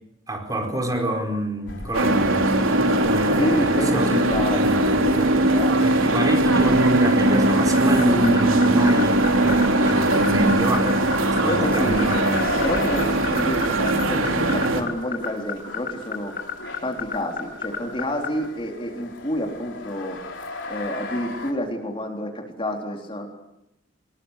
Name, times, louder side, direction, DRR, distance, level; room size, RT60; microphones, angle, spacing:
voice 1, 0.3-2.5 3.0-4.3 4.5-5.4 5.8-11.0 11.4-12.3, right 1 dB, 20° right, 3 dB, 4.6 m, -27 dB
sound 1, 1.7-21.5, left 2 dB, 65° left, 4.8 m, -37 dB
sound 2, 1.9-14.8, right 1 dB, 80° right, 3.5 m, -20 dB
voice 2, 3.4-6.3 11.4-12.1 12.6-16.3 16.8-20.2 20.7-23.3, equal, 25° left, 2 dB, 3.9 m, -29 dB
sound 3, 7.7-18.3, left 8 dB, 45° left, 7.4 m, -28 dB
26.0 x 22.0 x 8.3 m, 0.87 s
head